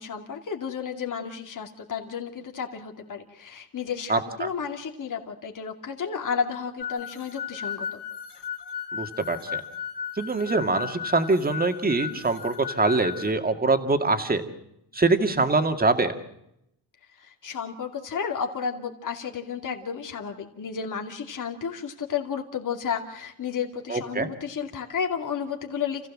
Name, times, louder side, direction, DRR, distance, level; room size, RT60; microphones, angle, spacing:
voice 1, 0.0-8.0 17.2-26.1, left 7 dB, 45° left, 3 dB, 2.6 m, -32 dB
voice 2, 4.1-4.5 8.9-9.6 10.2-14.4 14.9-16.1 23.9-24.3, right 3 dB, 20° right, 7 dB, 2.3 m, -24 dB
sound 1, 6.8-13.3, left 8 dB, 70° left, 3.0 m, -35 dB
28.5 x 15.5 x 7.5 m, 0.80 s
cardioid pair, 110°, 42 cm